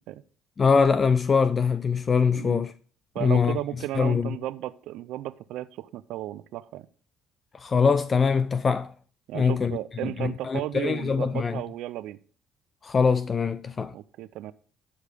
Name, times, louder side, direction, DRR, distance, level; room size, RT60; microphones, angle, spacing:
voice 1, 0.6-2.7 3.2-3.6 4.0-4.4 7.5-8.9 9.3-9.8 10.0-11.6 12.8-13.9, left 5 dB, 35° left, 0.5 m, -23 dB
voice 2, 2.3-2.6 3.1-6.9 9.3-12.2 13.9-14.5, right 14 dB, 70° right, 0.5 m, -34 dB
11.5 x 4.8 x 5.1 m
hypercardioid pair, 65°, 0 cm